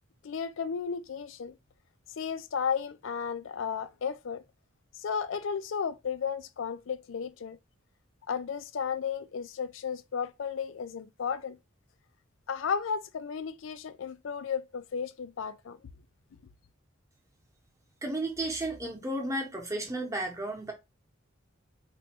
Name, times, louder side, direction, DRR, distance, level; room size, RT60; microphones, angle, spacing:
voice 1, 0.2-1.6 2.2-4.4 4.9-7.6 8.3-11.6 12.5-15.8, left 6 dB, 65° left, 0.4 m, -34 dB
voice 2, 18.0-20.7, right 1 dB, 15° right, 0.7 m, -33 dB
3.1 x 2.2 x 4.2 m
head